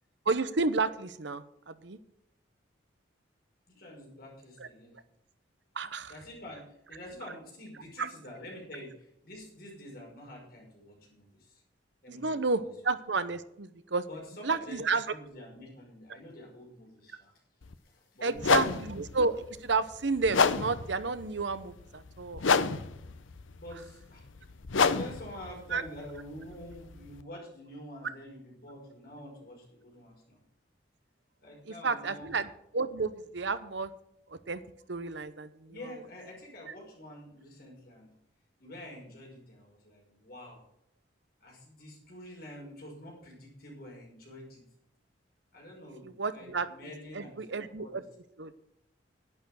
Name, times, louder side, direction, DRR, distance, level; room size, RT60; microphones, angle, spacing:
voice 1, 0.3-2.0 4.6-4.7 5.7-6.1 8.0-8.1 12.1-14.1 14.4-15.1 18.2-22.4 25.7-25.8 31.7-33.9 34.3-34.6 34.9-35.8 46.0-46.7 47.1-48.0 48.4-48.5, right 4 dB, 70° right, 13 dB, 0.9 m, -31 dB
voice 2, 3.7-4.9 5.7-5.8 6.1-11.6 12.0-12.7 14.1-14.8 15.1-17.3 17.8-18.8 23.6-30.4 31.4-32.3 35.7-38.1 38.6-40.6 41.4-44.6 45.5-48.0, left 1 dB, 50° left, -1 dB, 5.6 m, -47 dB
sound 1, 17.6-17.7 18.4-27.2, left 5 dB, 90° left, 0.7 m, -30 dB
11.0 x 9.3 x 6.3 m, 0.78 s
head